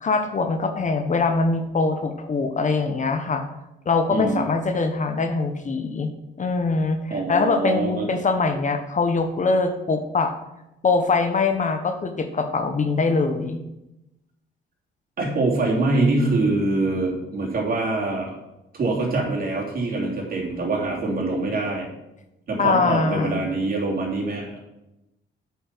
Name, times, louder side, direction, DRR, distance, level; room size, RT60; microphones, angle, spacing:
voice 1, 0.0-3.4 3.8-6.1 6.4-10.3 10.8-13.6 22.6-23.4, left 4 dB, 40° left, 7 dB, 1.0 m, -23 dB
voice 2, 4.1-4.4 7.1-8.1 15.2-18.4 18.7-21.9 22.5-24.6, right 2 dB, 50° right, -2 dB, 3.0 m, -24 dB
8.3 x 5.6 x 6.0 m, 0.92 s
cardioid pair, 90°, 20 cm